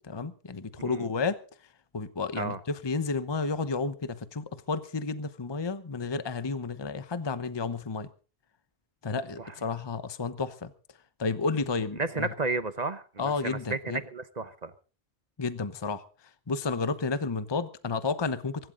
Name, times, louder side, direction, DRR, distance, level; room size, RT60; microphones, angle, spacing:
voice 1, 0.0-1.4 1.9-8.1 9.0-10.7 11.2-12.3 13.2-14.0 15.4-18.7, left 4 dB, 25° left, 0.9 m, -31 dB
voice 2, 12.0-14.7, right 3 dB, 40° right, 0.9 m, -32 dB
23.5 x 12.5 x 3.9 m
omnidirectional pair, 1.2 m